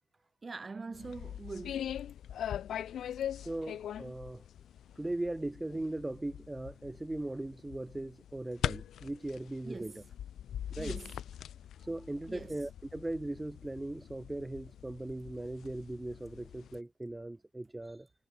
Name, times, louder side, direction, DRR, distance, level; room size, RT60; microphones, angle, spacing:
voice 1, 0.4-1.8 9.6-10.0 10.8-11.1 12.3-12.5, right 4 dB, 30° right, 5.1 m, -43 dB
sound 1, 0.9-16.8, left 10 dB, 65° left, 1.5 m, -42 dB
voice 2, 3.3-4.4 4.9-10.0 10.7-11.0 11.8-18.1, right 2 dB, 10° right, 1.7 m, -39 dB
cardioid pair, 90°, 0 cm